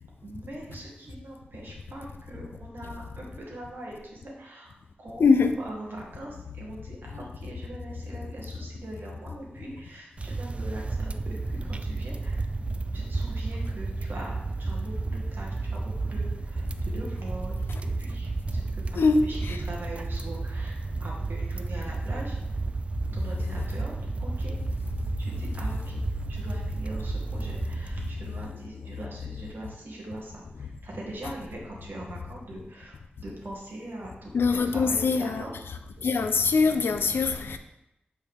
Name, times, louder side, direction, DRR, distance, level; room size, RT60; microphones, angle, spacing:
voice 1, 0.2-4.7 5.0-5.2 5.6-12.4 12.9-22.4 23.1-24.6 25.2-26.0 26.3-35.5, right 1 dB, 70° right, 1.9 m, -42 dB
voice 2, 5.2-5.5 19.0-19.6 34.3-35.5 36.0-37.6, left 4 dB, 85° left, 0.6 m, -23 dB
sound 1, 10.2-28.5, right 3 dB, 35° right, 0.3 m, -32 dB
8.3 x 4.6 x 3.5 m
wide cardioid pair, 75°, 4 cm